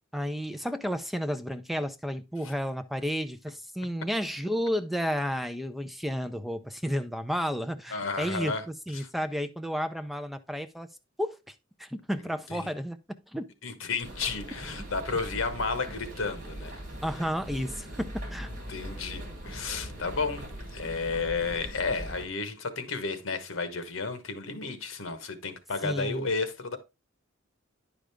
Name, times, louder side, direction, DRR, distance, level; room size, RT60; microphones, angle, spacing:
voice 1, 0.1-10.9 11.2-11.5 11.8-13.0 13.3-13.4 17.0-18.5 25.8-26.2, equal, ahead, 0.4 m, -32 dB
voice 2, 7.9-8.6 8.9-9.1 12.5-12.6 13.6-16.8 18.7-26.8, left 4 dB, 80° left, 1.2 m, -32 dB
sound 1, 14.0-22.3, equal, 40° right, 3.0 m, -40 dB
10.0 x 5.1 x 3.4 m
head